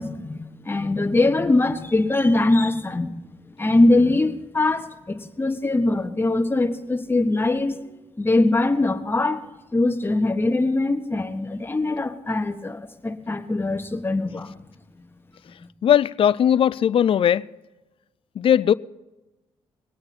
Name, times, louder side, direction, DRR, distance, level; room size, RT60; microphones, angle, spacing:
voice 1, 0.0-3.1 3.6-9.4 9.7-14.5, left 2 dB, 20° left, 1.2 m, -22 dB
voice 2, 15.8-17.5 18.4-18.7, left 9 dB, 55° left, 0.4 m, -18 dB
21.5 x 8.8 x 4.4 m
cardioid pair, 95°, 11 cm